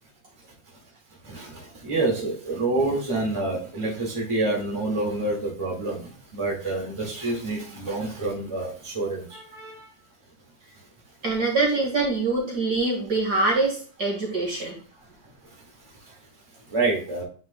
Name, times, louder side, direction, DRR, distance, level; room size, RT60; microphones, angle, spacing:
voice 1, 1.2-9.4 16.0-16.1 16.7-17.2, right 2 dB, 15° right, -1 dB, 2.1 m, -27 dB
voice 2, 9.3-9.9 11.2-14.8, right 3 dB, 45° right, -1 dB, 2.4 m, -25 dB
9.6 x 5.4 x 2.4 m, 0.40 s
omnidirectional pair, 2.4 m